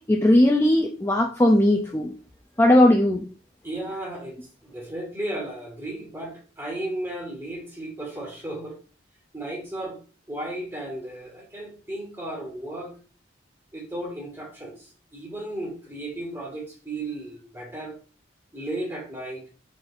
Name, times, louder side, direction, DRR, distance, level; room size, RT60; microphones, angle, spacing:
voice 1, 0.1-2.1 2.6-3.2, left 1 dB, 15° left, 1 dB, 0.4 m, -18 dB
voice 2, 3.6-4.4 4.6-8.7 9.3-10.0 10.3-12.9 13.7-18.0 18.5-19.4, right 1 dB, 10° right, 0 dB, 1.3 m, -34 dB
4.3 x 4.0 x 2.5 m, 0.38 s
head